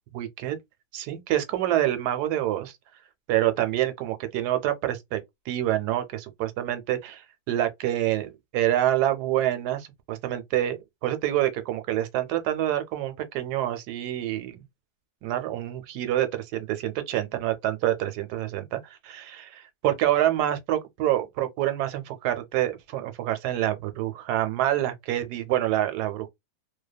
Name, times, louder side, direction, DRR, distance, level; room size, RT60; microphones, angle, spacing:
voice 1, 0.1-0.6 0.9-2.7 3.3-5.2 5.5-10.8 11.0-14.6 15.2-26.3, right 13 dB, 80° right, 1.1 m, -27 dB
2.7 x 2.1 x 2.2 m
omnidirectional pair, 1.7 m